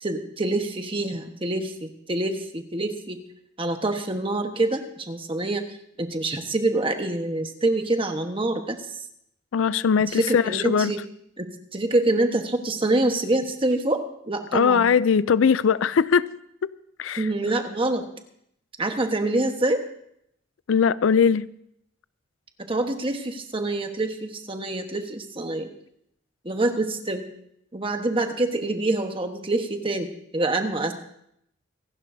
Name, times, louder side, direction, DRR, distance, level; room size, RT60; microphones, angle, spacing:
voice 1, 0.0-3.2 3.6-5.7 6.0-9.0 10.1-11.0 11.4-14.9 17.2-18.1 18.8-19.8 22.6-25.7 26.4-27.3 27.7-30.9, right 2 dB, 25° right, 1.2 m, -26 dB
voice 2, 9.5-10.9 14.5-16.7 17.0-17.2 20.7-21.5, left 6 dB, 90° left, 0.4 m, -20 dB
26.0 x 12.0 x 2.7 m
head